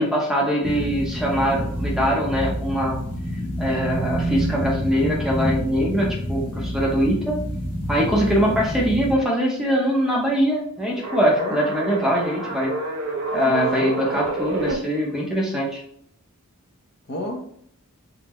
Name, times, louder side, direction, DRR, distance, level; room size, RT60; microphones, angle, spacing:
voice 1, 0.0-3.0 3.6-7.4 7.9-12.7 13.3-15.8, equal, ahead, -3 dB, 0.6 m, -22 dB
sound 1, 0.6-9.1, equal, 75° left, 1.2 m, -28 dB
sound 2, 10.9-14.7, right 2 dB, 85° right, 0.6 m, -29 dB
voice 2, 13.5-14.2 17.1-17.4, equal, 45° left, 1 dB, 0.7 m, -30 dB
3.6 x 2.1 x 2.9 m, 0.67 s
head